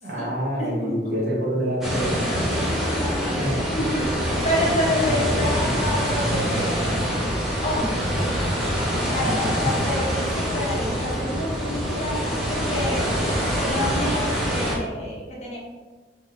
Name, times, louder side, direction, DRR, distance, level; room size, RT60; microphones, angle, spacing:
voice 1, 0.0-2.2 3.4-3.6 5.0-5.8 9.2-9.7, equal, 60° right, -4 dB, 1.2 m, -27 dB
voice 2, 0.6-1.0 2.6-7.4 7.6-8.3 9.1-13.1 13.5-15.6, left 1 dB, 40° left, -4 dB, 1.1 m, -29 dB
sound 1, 1.8-14.8, equal, ahead, 0.9 m, -25 dB
3.4 x 3.3 x 4.4 m, 1.4 s
head